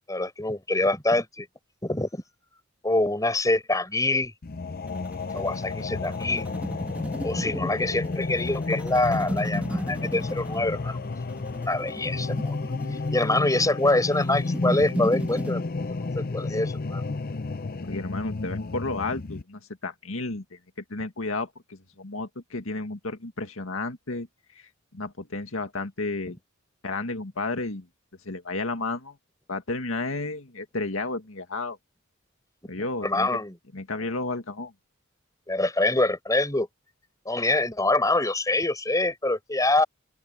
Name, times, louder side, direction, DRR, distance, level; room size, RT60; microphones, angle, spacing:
voice 1, 0.1-1.5 1.8-2.2 2.8-4.3 5.3-6.5 7.2-11.0 11.3-12.6 12.9-15.7 16.2-17.0 33.0-33.5 35.5-36.7 37.2-39.8, left 2 dB, 15° left, 4.6 m, -25 dB
sound 1, 4.4-19.4, left 3 dB, 45° left, 0.7 m, -31 dB
sound 2, 4.9-15.5, equal, 5° right, 2.4 m, -36 dB
voice 2, 17.8-20.6 20.9-24.3 24.5-24.7 24.9-26.4 26.8-27.9 28.3-29.2 29.5-31.8 32.7-33.3 33.7-34.7, left 3 dB, 85° left, 2.0 m, -32 dB
open air
head